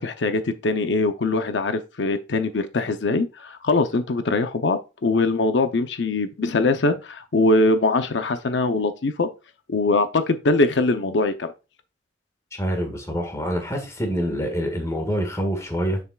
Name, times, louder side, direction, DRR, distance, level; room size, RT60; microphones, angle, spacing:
voice 1, 0.0-9.3 9.7-11.5, left 2 dB, 90° left, 0.7 m, -22 dB
voice 2, 12.6-16.0, equal, 15° left, 1.7 m, -26 dB
6.9 x 6.8 x 2.3 m
head